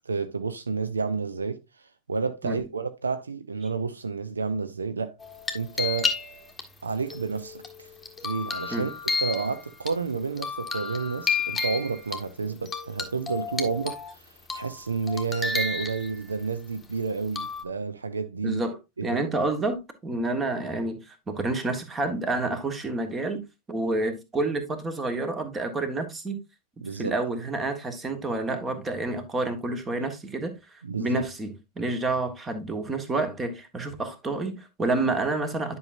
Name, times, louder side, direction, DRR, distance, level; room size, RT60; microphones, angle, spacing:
voice 1, 0.1-1.6 2.1-5.1 5.5-6.1 6.8-7.9 8.2-8.9 9.2-18.6 19.0-19.2 26.8-27.1 30.8-31.2, right 4 dB, 75° right, 0.6 m, -30 dB
sound 1, 5.2-6.6 7.1-9.9 10.4-12.2 12.7-14.1 14.5-14.8 15.1-16.4 17.4-17.6, left 4 dB, 10° left, 1.4 m, -31 dB
voice 2, 18.4-23.4 23.7-26.4 27.0-35.8, right 2 dB, 15° right, 1.4 m, -29 dB
10.5 x 5.6 x 2.6 m
figure-of-eight pair, 90°, 0 cm